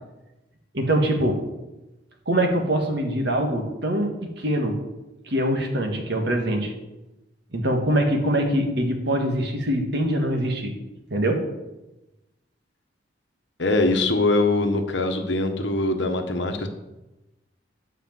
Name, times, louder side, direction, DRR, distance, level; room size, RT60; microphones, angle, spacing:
voice 1, 0.7-1.4 2.3-4.8 5.3-6.7 7.5-10.7 11.1-11.5, right 1 dB, 60° right, 3 dB, 1.7 m, -23 dB
voice 2, 13.6-16.7, left 2 dB, 65° left, 5 dB, 1.2 m, -22 dB
10.5 x 4.9 x 7.6 m, 1.0 s
head